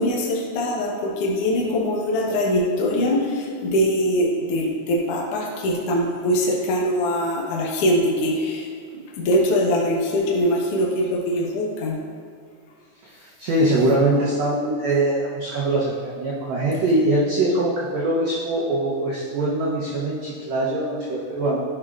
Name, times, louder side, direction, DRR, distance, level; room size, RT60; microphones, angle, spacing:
voice 1, 0.0-8.7 8.9-12.0, equal, 75° left, -3 dB, 1.3 m, -22 dB
voice 2, 13.0-21.6, right 1 dB, 80° right, -5 dB, 1.5 m, -22 dB
11.0 x 4.9 x 2.4 m, 2.3 s
omnidirectional pair, 4.2 m